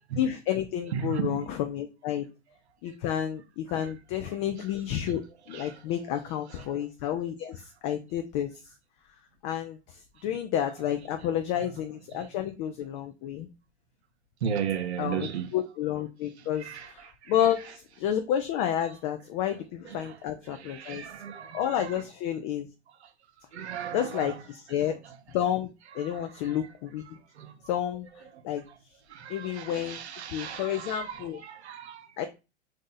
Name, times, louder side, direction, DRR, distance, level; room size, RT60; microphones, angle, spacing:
voice 1, 0.2-2.3 2.8-5.2 5.5-8.5 9.4-13.5 15.0-21.0 21.5-22.7 23.9-24.9 25.3-27.0 27.7-28.1 28.4-28.6 29.3-30.0 30.3-31.4 32.2-32.3, left 10 dB, 35° left, 0.4 m, -30 dB
voice 2, 0.9-1.6 3.8-3.9 4.2-4.7 5.5-6.8 10.6-11.2 11.6-11.9 14.4-15.5 16.4-17.8 18.8-19.0 19.8-20.0 20.4-22.1 23.0-23.1 23.5-25.4 25.8-26.7 27.0-27.5 27.9-28.3 28.7-28.8 29.1-32.3, right 8 dB, 80° right, 0.6 m, -38 dB
2.7 x 2.3 x 3.9 m
hypercardioid pair, 100°, 33 cm